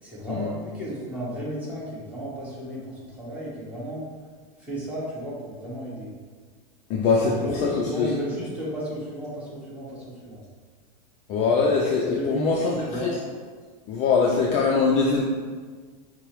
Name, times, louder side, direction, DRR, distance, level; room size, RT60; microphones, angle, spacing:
voice 1, 0.0-4.0 4.6-6.1 7.2-10.4 12.0-13.1, right 1 dB, 5° right, -8 dB, 1.0 m, -33 dB
voice 2, 6.9-8.1 11.3-12.7 13.0-13.1 13.9-15.2, left 4 dB, 35° left, -2 dB, 0.3 m, -22 dB
4.5 x 2.0 x 3.0 m, 1.5 s
supercardioid pair, 135°, 21 cm